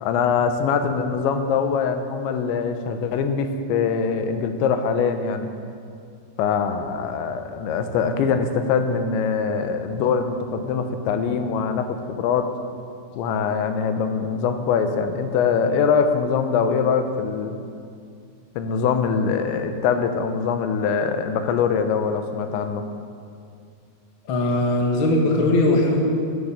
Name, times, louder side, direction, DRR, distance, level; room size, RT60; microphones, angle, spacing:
voice 1, 0.0-5.5 6.4-12.5 13.2-17.6 18.6-22.8, left 6 dB, 85° left, 7 dB, 3.3 m, -23 dB
voice 2, 24.3-26.0, left 1 dB, 50° left, 0 dB, 1.5 m, -19 dB
13.5 x 11.0 x 7.3 m, 2.3 s
omnidirectional pair, 5.1 m